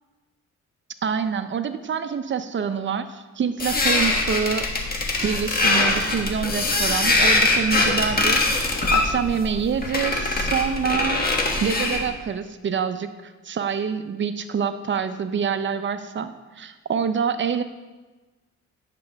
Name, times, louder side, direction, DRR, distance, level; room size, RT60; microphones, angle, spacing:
voice 1, 1.0-4.7 5.2-8.4 8.9-11.3 11.6-17.6, right 6 dB, 40° right, 10 dB, 0.6 m, -26 dB
sound 1, 3.6-12.1, left 2 dB, 30° left, 1.5 m, -22 dB
10.0 x 6.7 x 3.5 m, 1.2 s
cardioid pair, 90°, 30 cm